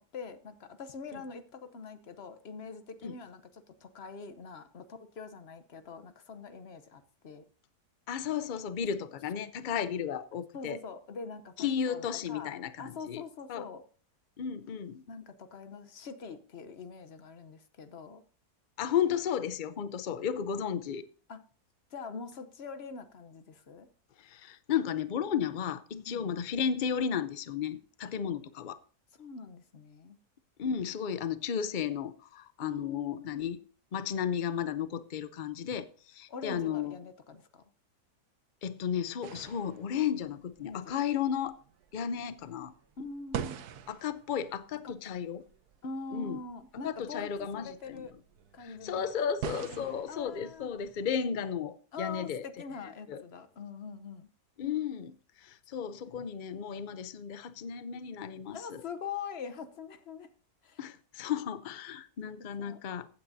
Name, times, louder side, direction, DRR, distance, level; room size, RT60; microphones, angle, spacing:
voice 1, 0.0-7.5 10.5-13.8 15.1-18.2 21.3-21.4 21.9-23.9 26.1-26.3 28.0-28.1 29.2-30.2 32.6-33.5 36.3-37.6 40.6-40.9 43.0-43.6 44.8-45.3 45.8-48.1 48.5-49.1 49.6-50.7 51.9-54.3 58.5-60.3 60.6-60.8 62.6-62.8, left 5 dB, 50° left, 1.0 m, -44 dB
voice 2, 8.1-10.8 11.6-13.2 13.5-13.7 14.4-15.0 18.8-21.0 24.2-28.8 30.6-33.6 33.9-37.0 38.6-41.6 41.9-42.7 43.9-45.4 46.1-46.4 46.8-48.1 48.6-52.5 53.1-53.2 54.6-55.2 55.4-58.8 60.8-63.1, left 8 dB, 90° left, 0.4 m, -34 dB
sound 1, 39.2-51.0, right 8 dB, 75° right, 1.3 m, -45 dB
15.5 x 9.0 x 2.6 m
omnidirectional pair, 1.7 m